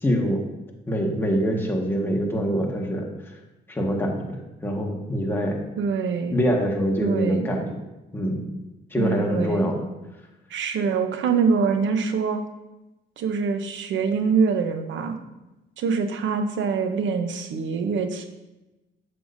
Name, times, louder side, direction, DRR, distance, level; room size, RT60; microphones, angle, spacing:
voice 1, 0.0-0.4 0.9-3.1 3.7-5.6 6.3-7.6 8.1-8.5 8.9-9.8, equal, 10° left, -1 dB, 1.5 m, -24 dB
voice 2, 5.8-6.4 7.0-7.5 9.0-9.7 10.5-12.4 13.2-15.2 15.8-18.3, right 5 dB, 70° right, 7 dB, 0.8 m, -24 dB
8.6 x 6.8 x 2.6 m, 1.0 s
cardioid pair, 90°, 20 cm